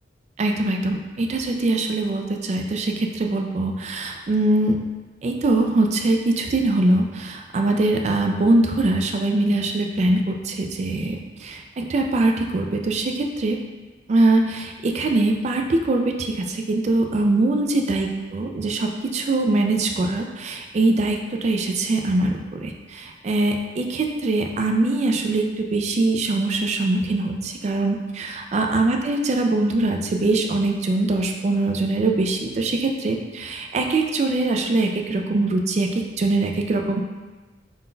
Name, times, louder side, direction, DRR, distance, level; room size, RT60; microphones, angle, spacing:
voice 1, 0.4-4.8 5.2-13.6 14.1-37.0, right 2 dB, 35° right, 3 dB, 0.3 m, -22 dB
3.8 x 2.2 x 3.8 m, 1.3 s
head